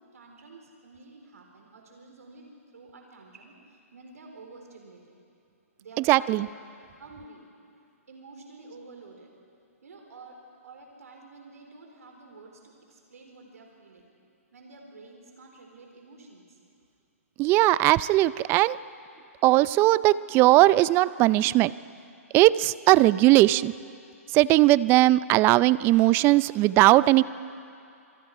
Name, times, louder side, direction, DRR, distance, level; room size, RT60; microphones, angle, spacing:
voice 1, 0.0-5.2 5.8-6.6 6.9-7.5 7.8-9.3 9.8-10.4 10.6-14.1 14.5-16.6, right 3 dB, 85° right, 1 dB, 4.2 m, -50 dB
voice 2, 6.1-6.5 17.4-18.8 19.4-21.7 22.3-23.7 24.3-27.2, right 17 dB, 25° right, 19 dB, 0.4 m, -19 dB
27.0 x 24.5 x 4.9 m, 2.5 s
hypercardioid pair, 135°, 8 cm